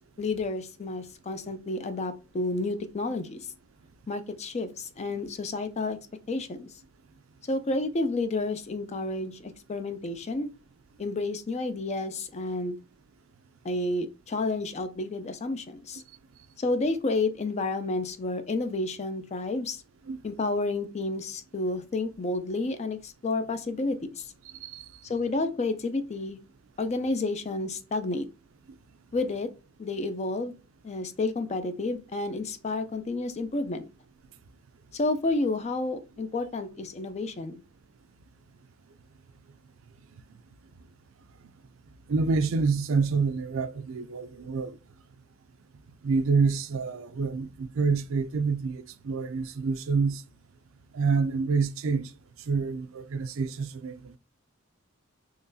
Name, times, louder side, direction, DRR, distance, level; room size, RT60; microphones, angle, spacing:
voice 1, 0.2-3.5 4.1-6.0 6.3-6.7 7.5-10.5 11.0-12.8 13.6-16.0 16.6-19.8 20.2-24.3 25.0-26.4 26.8-28.3 29.1-29.5 29.8-30.5 30.8-33.8 34.9-37.6, left 2 dB, 30° left, 0.4 m, -30 dB
voice 2, 24.5-25.0 28.7-28.8 40.1-40.2 40.8-40.9 42.1-44.8 46.0-50.2 50.9-52.1 52.4-54.2, right 4 dB, 70° right, 0.4 m, -27 dB
3.8 x 3.1 x 2.6 m
head